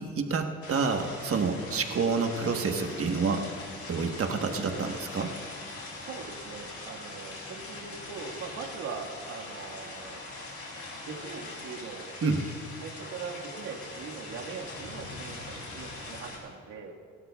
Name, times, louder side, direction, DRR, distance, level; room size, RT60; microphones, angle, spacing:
voice 1, 0.0-3.5 3.9-5.3 12.2-12.4, right 4 dB, 50° right, 4 dB, 1.3 m, -28 dB
sound 1, 0.6-16.4, left 2 dB, 50° left, 4.2 m, -42 dB
voice 2, 5.9-10.2 11.0-12.2 12.8-16.9, right 5 dB, 85° right, -1 dB, 1.9 m, -41 dB
27.0 x 12.5 x 2.4 m, 2.2 s
cardioid pair, 90°, 30 cm